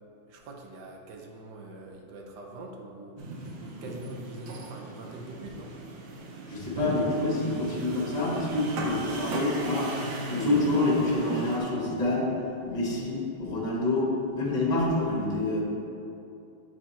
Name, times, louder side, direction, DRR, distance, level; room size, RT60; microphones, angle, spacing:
voice 1, 0.3-3.2 3.5-5.8 6.8-7.1 7.6-7.9, right 2 dB, 70° right, 1 dB, 1.1 m, -43 dB
sound 1, 3.2-11.6, right 2 dB, 85° right, 1.6 m, -37 dB
voice 2, 6.5-9.9 10.3-12.3 12.7-15.6, left 2 dB, 30° left, -4 dB, 0.8 m, -27 dB
7.9 x 3.4 x 4.2 m, 2.7 s
omnidirectional pair, 2.2 m